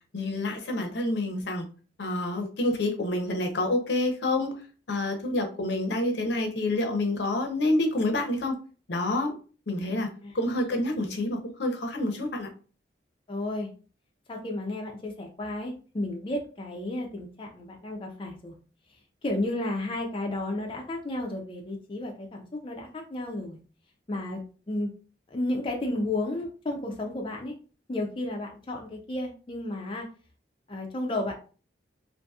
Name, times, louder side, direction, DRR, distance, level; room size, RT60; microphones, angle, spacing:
voice 1, 0.1-1.7 2.0-4.5 4.9-8.6 8.9-9.3 9.7-10.1 10.3-12.5, left 1 dB, 70° left, 3 dB, 0.6 m, -28 dB
voice 2, 10.2-10.7 13.3-13.7 14.3-18.5 19.2-23.6 24.1-24.9 25.3-27.5 27.9-30.1 30.7-31.3, left 1 dB, 30° left, 0 dB, 0.4 m, -32 dB
2.7 x 2.5 x 2.3 m, 0.37 s
head